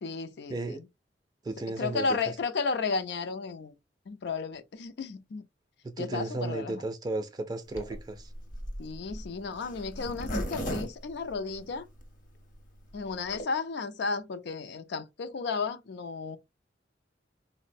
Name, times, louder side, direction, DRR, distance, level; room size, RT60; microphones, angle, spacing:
voice 1, 0.0-0.9 1.7-3.7 4.1-5.4 6.0-6.8 8.8-11.9 12.9-16.4, left 4 dB, 65° left, 0.4 m, -33 dB
voice 2, 1.4-2.1 5.8-8.3, right 2 dB, 25° right, 0.3 m, -34 dB
Zipper (clothing), 7.7-12.0 12.5-12.6 12.8-12.9 13.1-13.4, equal, 50° left, 0.8 m, -36 dB
3.9 x 2.0 x 2.5 m
head